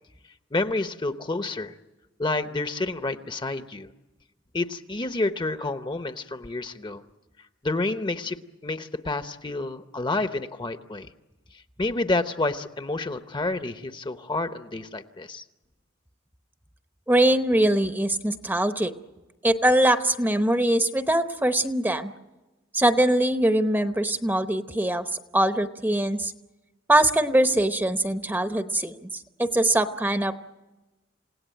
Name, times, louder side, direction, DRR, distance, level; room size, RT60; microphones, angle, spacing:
voice 1, 0.5-1.7 2.2-3.9 4.5-7.0 7.6-8.4 8.6-11.1 11.8-15.4, left 2 dB, 25° left, 9 dB, 0.9 m, -29 dB
voice 2, 17.1-18.9 19.4-22.1 22.7-25.1 25.3-26.3 26.9-28.9 29.4-30.4, right 1 dB, 10° right, 8 dB, 0.9 m, -22 dB
28.0 x 17.5 x 9.1 m, 1.1 s
head